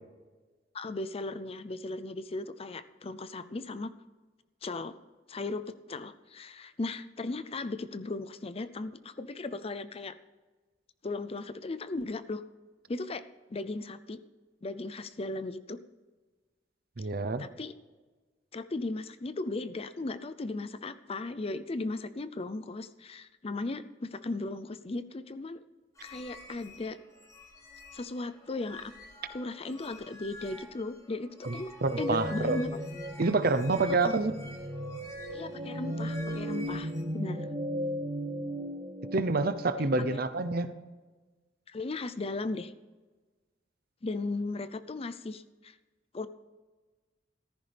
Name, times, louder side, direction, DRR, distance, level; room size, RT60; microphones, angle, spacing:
voice 1, 0.7-3.9 4.6-4.9 5.3-10.2 11.0-12.4 12.9-13.2 13.5-14.2 14.6-15.8 17.4-17.7 18.5-25.6 26.0-27.0 27.9-28.9 29.3-31.7 32.0-32.8 34.0-34.1 35.3-37.5 40.1-40.2 41.7-42.7 44.0-45.8 46.1-46.3, left 2 dB, 35° left, 13 dB, 0.5 m, -37 dB
voice 2, 17.0-17.5 31.4-31.6 31.8-32.6 33.2-34.3 39.1-40.7, right 3 dB, 55° right, 12 dB, 0.7 m, -27 dB
sound 1, 25.9-37.0, left 1 dB, 20° left, 1.9 m, -50 dB
sound 2, 31.8-39.5, equal, 40° right, 2.7 m, -36 dB
15.0 x 14.0 x 3.4 m, 1.3 s
head